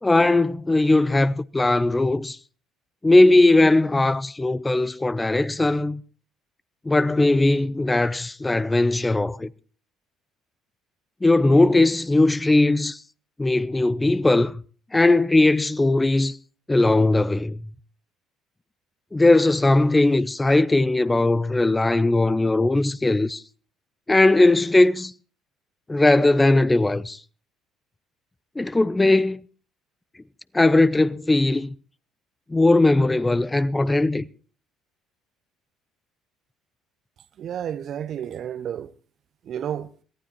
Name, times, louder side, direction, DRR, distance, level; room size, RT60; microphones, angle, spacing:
voice 1, 0.0-2.4 3.0-6.0 6.9-9.5 11.2-13.0 13.4-14.6 14.9-16.4 16.7-17.6 19.1-23.4 24.1-25.1 25.9-27.2 28.6-29.4 30.5-31.7 32.5-34.2, left 2 dB, 15° left, 0.6 m, -19 dB
voice 2, 37.4-38.9 39.4-39.9, right 9 dB, 55° right, 0.7 m, -31 dB
22.5 x 15.0 x 3.0 m
hypercardioid pair, 55°, 0 cm